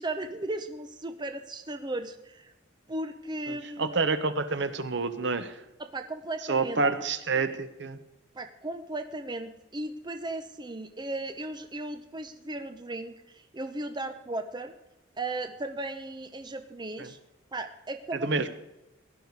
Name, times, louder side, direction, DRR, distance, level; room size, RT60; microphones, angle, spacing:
voice 1, 0.0-2.5 2.9-4.0 5.8-6.8 8.3-14.7 15.2-17.2 17.5-18.3, right 2 dB, 20° right, 8 dB, 0.8 m, -36 dB
voice 2, 3.5-5.6 6.5-8.0 17.0-17.1 18.2-18.5, right 4 dB, 65° right, 11 dB, 1.1 m, -28 dB
17.0 x 11.0 x 4.8 m, 0.96 s
head